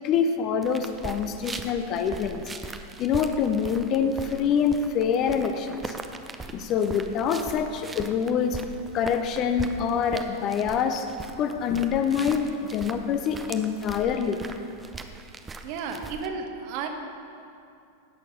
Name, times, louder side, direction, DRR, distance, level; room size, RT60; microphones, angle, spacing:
voice 1, 0.0-5.9 6.5-8.6 8.9-11.1 11.4-14.4, left 7 dB, 35° left, 8 dB, 0.7 m, -26 dB
sound 1, 0.6-16.3, right 3 dB, 15° right, 0.6 m, -40 dB
voice 2, 15.6-16.9, right 5 dB, 45° right, 4 dB, 1.2 m, -33 dB
16.5 x 6.6 x 5.3 m, 2.5 s
figure-of-eight pair, 90°, 0 cm